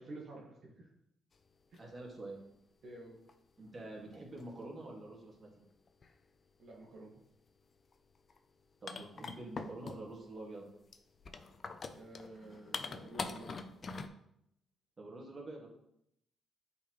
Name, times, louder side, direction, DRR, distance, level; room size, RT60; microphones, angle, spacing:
voice 1, 0.1-0.9 1.7-1.8 2.8-3.2 6.6-7.1 11.9-13.6, right 1 dB, 60° right, -4 dB, 1.5 m, -50 dB
sound 1, 1.7-1.8 3.3-3.4 4.1-4.7 5.9-6.1 7.9-8.0 8.3-8.4 8.9-10.2 10.9-14.1, left 4 dB, 40° left, 0.5 m, -43 dB
voice 2, 1.8-2.4 3.6-5.5 8.8-10.7 15.0-15.7, right 2 dB, 30° right, -3 dB, 2.0 m, -46 dB
8.4 x 4.1 x 3.1 m, 0.77 s
cardioid pair, 90°, 0 cm